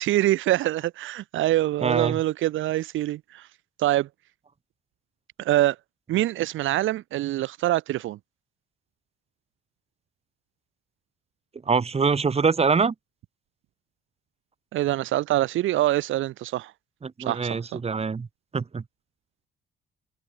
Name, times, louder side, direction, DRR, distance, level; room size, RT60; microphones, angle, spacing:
voice 1, 0.0-3.5 3.8-4.1 5.4-5.8 6.1-8.2 14.7-16.7 17.3-17.8, right 15 dB, 80° right, 0.9 m, -25 dB
voice 2, 1.8-2.2 11.7-12.9 17.0-18.3 18.5-18.8, right 5 dB, 30° right, 2.0 m, -24 dB
cardioid pair, 90°, 20 cm